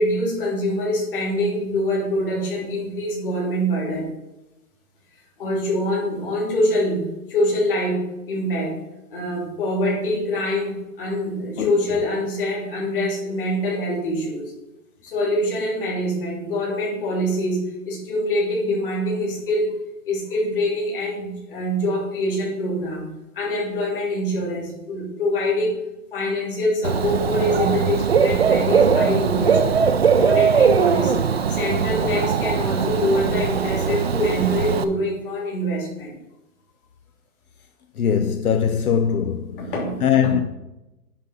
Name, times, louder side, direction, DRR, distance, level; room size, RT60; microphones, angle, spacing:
voice 1, 0.0-4.1 5.4-8.8 9.1-14.5 15.0-19.7 20.0-23.1 23.3-25.8 26.1-29.8 30.1-36.2 39.6-40.3, left 1 dB, 35° left, 3.2 m, -24 dB
Dog / Bird, 26.8-34.8, right 6 dB, 45° right, 0.5 m, -20 dB
voice 2, 38.0-39.7 40.0-40.4, left 8 dB, 70° left, 0.7 m, -21 dB
10.0 x 4.2 x 5.8 m
hypercardioid pair, 170°, 45 cm